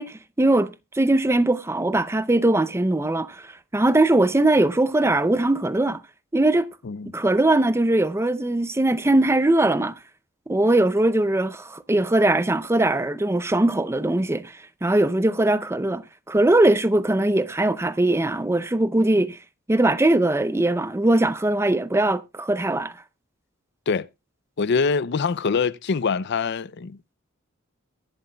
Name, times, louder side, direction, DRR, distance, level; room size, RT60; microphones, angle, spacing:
voice 1, 0.0-6.0 6.3-6.7 7.1-9.9 10.5-19.4 19.7-23.0, right 2 dB, 15° right, 0.5 m, -21 dB
voice 2, 6.8-7.2 23.9-24.1 24.6-27.1, left 5 dB, 55° left, 0.5 m, -24 dB
22.5 x 7.8 x 2.2 m
head